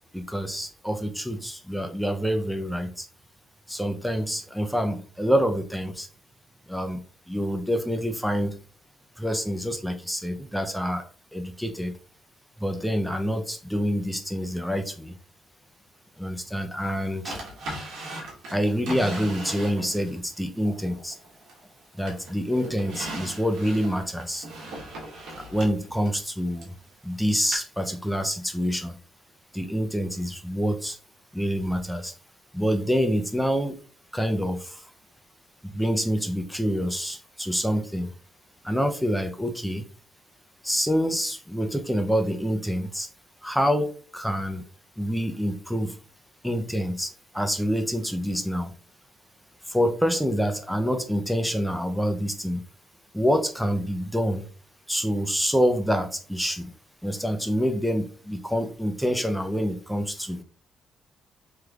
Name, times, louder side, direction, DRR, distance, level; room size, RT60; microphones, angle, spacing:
voice 1, 0.1-3.1 3.7-6.1 6.7-7.0 7.3-8.6 9.2-11.0 11.3-11.9 12.6-15.1 16.2-17.4 18.5-21.2 21.9-24.5 25.5-26.7 27.0-29.0 29.5-31.0 31.3-32.1 32.5-33.8 34.1-34.9 35.6-38.1 38.6-39.8 40.6-43.1 43.4-44.6 45.0-46.0 46.4-48.7 49.7-52.6 53.1-54.5 54.9-56.7 57.0-60.4, equal, ahead, 6 dB, 0.5 m, -27 dB
Drawer open or close, 17.2-20.2 20.6-21.7 22.1-26.8 27.5-27.6, right 1 dB, 80° right, 1.2 m, -38 dB
3.3 x 3.0 x 2.3 m, 0.41 s
cardioid pair, 90°, 0 cm